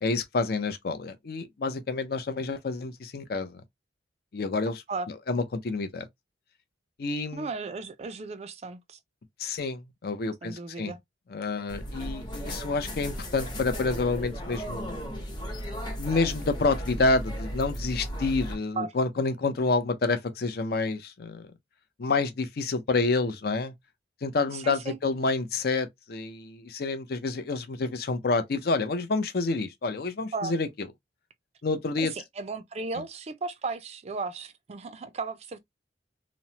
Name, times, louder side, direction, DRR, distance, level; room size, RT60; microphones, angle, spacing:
voice 1, 0.0-3.6 4.3-4.8 5.3-6.1 7.0-7.5 9.4-10.9 11.3-15.0 16.0-21.5 22.0-23.7 24.2-30.9 31.6-32.1, left 3 dB, 55° left, 0.5 m, -28 dB
voice 2, 7.3-9.0 10.4-11.0 18.8-18.9 24.5-25.0 30.3-30.5 32.0-35.6, right 4 dB, 35° right, 0.4 m, -35 dB
sound 1, 11.7-18.6, equal, 25° left, 0.8 m, -35 dB
2.9 x 2.1 x 2.7 m
head